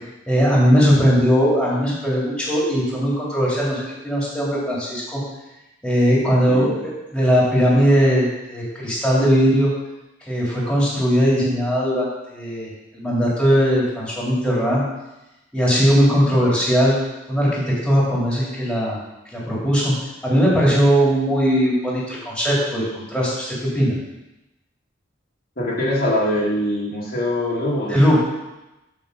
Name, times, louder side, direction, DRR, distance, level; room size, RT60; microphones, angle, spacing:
voice 1, 0.3-5.2 5.8-9.7 10.3-14.8 15.5-17.0 17.3-19.0 19.3-20.0 20.2-23.9 27.9-28.2, equal, 5° left, -6 dB, 2.8 m, -19 dB
voice 2, 25.6-28.0, left 1 dB, 50° left, -6 dB, 2.1 m, -23 dB
7.4 x 5.2 x 6.6 m, 0.97 s
head